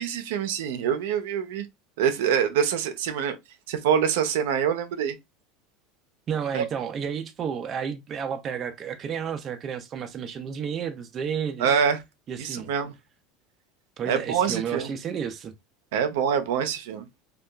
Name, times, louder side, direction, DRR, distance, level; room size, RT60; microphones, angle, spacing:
voice 1, 0.0-1.7 2.0-3.4 3.7-5.2 6.5-6.6 11.6-12.0 12.4-12.9 14.1-14.9 15.9-17.1, right 8 dB, 85° right, 0.5 m, -25 dB
voice 2, 6.3-11.7 12.3-12.7 14.0-15.5, right 7 dB, 30° right, 0.3 m, -31 dB
2.8 x 2.2 x 2.2 m
supercardioid pair, 155°, 0 cm